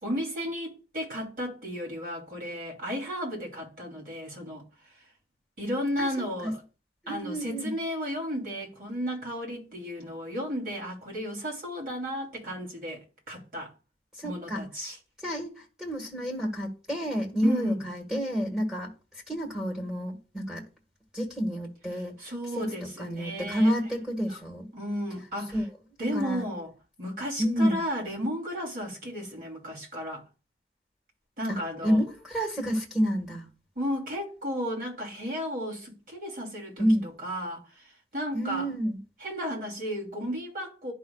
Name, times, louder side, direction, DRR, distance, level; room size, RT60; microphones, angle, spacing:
voice 1, 0.0-4.6 5.6-6.6 7.1-13.7 14.2-15.0 17.4-17.8 22.2-23.7 24.3-24.4 24.7-25.6 26.0-26.7 27.0-30.2 31.4-32.0 33.7-38.7 39.2-40.9, equal, 50° right, 3.0 m, -34 dB
voice 2, 6.0-6.5 7.0-7.7 14.2-14.7 15.2-18.9 19.3-20.7 21.1-22.2 22.5-24.7 25.5-25.6 26.0-26.4 27.4-27.8 31.5-31.6 31.8-33.5 36.8-37.1 38.3-39.0, equal, 5° right, 1.6 m, -29 dB
11.5 x 5.4 x 2.4 m
head